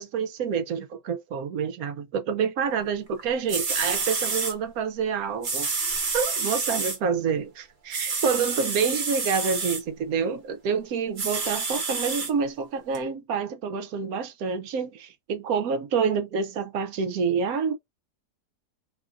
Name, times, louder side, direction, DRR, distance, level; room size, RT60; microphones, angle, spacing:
voice 1, 0.0-5.7 6.1-17.7, right 6 dB, 70° right, 1.0 m, -28 dB
sound 1, 3.2-3.3 3.5-4.5 5.4-7.0 7.9-9.8 11.2-12.3 12.9-13.0, right 4 dB, 40° right, 0.8 m, -28 dB
3.6 x 2.5 x 2.4 m
omnidirectional pair, 1.7 m